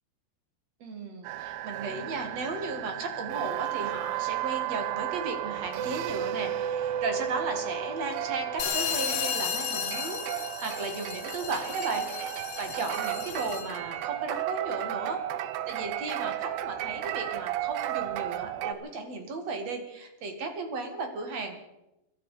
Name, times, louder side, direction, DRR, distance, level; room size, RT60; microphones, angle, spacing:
voice 1, 0.8-12.1 12.4-15.2 15.7-21.6, right 3 dB, 45° right, 5 dB, 2.7 m, -35 dB
sound 1, 1.2-18.7, right 11 dB, 80° right, 2.7 m, -33 dB
sound 2, 8.6-13.8, left 9 dB, 70° left, 2.6 m, -34 dB
23.0 x 12.5 x 5.0 m, 0.90 s
omnidirectional pair, 4.9 m